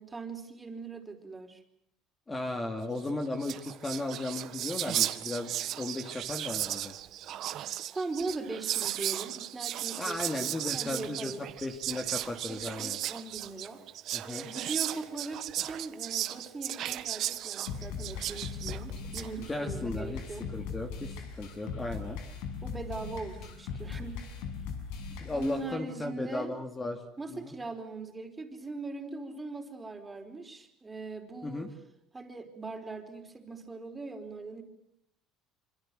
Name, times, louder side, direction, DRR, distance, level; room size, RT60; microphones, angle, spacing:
voice 1, 0.0-1.6 7.9-10.5 10.7-11.4 12.5-13.8 14.2-20.5 22.6-24.2 25.3-26.5 27.2-31.7 32.1-34.6, right 3 dB, 15° right, 5 dB, 4.7 m, -40 dB
voice 2, 2.3-6.9 10.0-13.0 14.1-14.4 19.5-20.2 20.5-22.2 25.2-27.0 27.3-27.5 31.4-31.7, left 2 dB, 15° left, 4 dB, 2.5 m, -36 dB
Whispering, 3.1-3.2 3.3-19.3, right 12 dB, 50° right, 1.7 m, -35 dB
sound 1, 17.7-25.7, left 6 dB, 80° left, 6.7 m, -39 dB
27.0 x 26.5 x 7.8 m, 0.72 s
cardioid pair, 135°, 0 cm